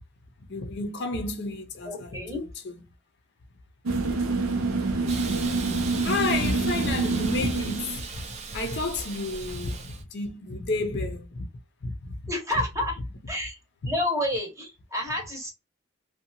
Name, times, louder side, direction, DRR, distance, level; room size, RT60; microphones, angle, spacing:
voice 1, 0.5-2.8 5.4-5.5 6.0-8.0 8.5-11.5 11.8-12.2 15.2-15.3, left 2 dB, 55° left, 0.6 m, -31 dB
voice 2, 1.9-2.4 12.3-13.0 13.3-13.6 13.9-15.5, left 1 dB, 15° right, 0.8 m, -29 dB
sound 1, 3.9-8.1, right 3 dB, 85° right, 0.6 m, -27 dB
Hiss, 5.1-10.0, right 4 dB, 35° right, 0.4 m, -38 dB
2.7 x 2.2 x 2.6 m
head